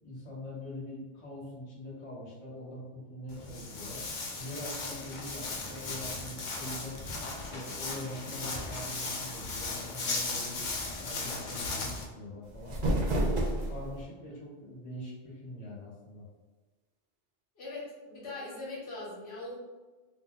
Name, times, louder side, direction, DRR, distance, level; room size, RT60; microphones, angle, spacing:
voice 1, 0.0-4.0 4.4-7.0 7.3-10.7 11.0-12.8 13.2-16.2, left 1 dB, 35° left, -5 dB, 0.9 m, -43 dB
Walk footsteps, 3.3-12.0, left 3 dB, 55° left, 0.6 m, -37 dB
sound 1, 12.4-14.0, right 1 dB, 60° right, 0.6 m, -30 dB
voice 2, 17.6-19.6, left 2 dB, 70° left, -5 dB, 1.1 m, -41 dB
2.6 x 2.2 x 3.5 m, 1.2 s
omnidirectional pair, 1.1 m